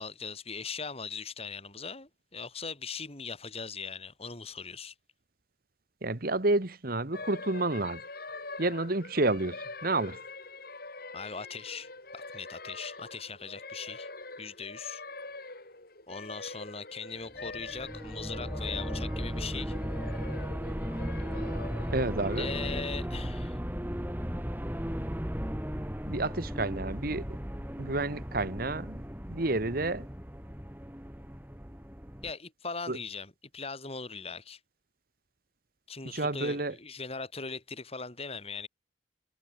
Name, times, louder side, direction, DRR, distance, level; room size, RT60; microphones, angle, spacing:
voice 1, 0.0-4.9 11.1-14.1 14.4-15.0 16.1-19.7 22.4-23.6 32.2-34.6 35.9-38.7, left 5 dB, 30° left, 2.8 m, -40 dB
voice 2, 6.0-8.0 8.6-10.2 21.9-22.5 26.1-27.3 27.8-29.0 29.3-30.1 32.9-33.0 36.0-36.7, right 2 dB, 50° right, 1.5 m, -30 dB
sound 1, 7.1-22.8, left 3 dB, 50° left, 7.1 m, -44 dB
sound 2, 17.4-32.3, equal, 10° right, 3.1 m, -36 dB
head